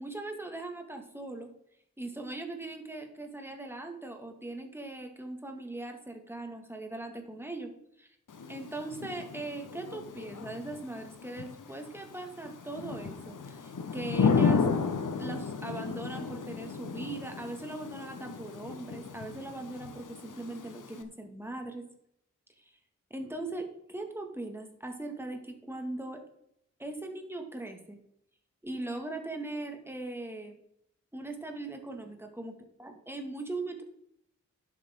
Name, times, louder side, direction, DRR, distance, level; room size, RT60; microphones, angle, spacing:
voice 1, 0.0-1.5 2.0-7.7 8.0-8.1 8.5-14.7 15.2-21.8 22.6-22.7 23.1-26.2 26.8-28.0 28.6-30.6 31.1-32.5 32.8-33.8, right 2 dB, 10° right, 3 dB, 1.8 m, -40 dB
Thunder / Rain, 8.3-21.0, left 5 dB, 90° left, 1.0 m, -34 dB
11.0 x 8.0 x 3.6 m, 0.77 s
wide cardioid pair, 95°, 31 cm